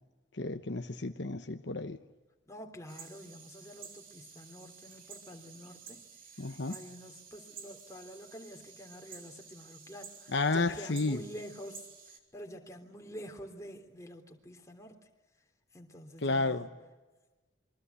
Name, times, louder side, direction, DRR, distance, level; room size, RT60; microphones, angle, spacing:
voice 1, 0.4-2.0 6.4-6.7 10.3-11.2 16.2-16.7, left 3 dB, 65° left, 7 dB, 1.1 m, -31 dB
voice 2, 2.5-6.1 6.3-15.0 15.7-16.8, equal, 15° left, 3 dB, 3.4 m, -48 dB
sound 1, 2.9-12.2, right 6 dB, 45° right, 3.4 m, -52 dB
27.0 x 24.0 x 8.3 m, 1.2 s
head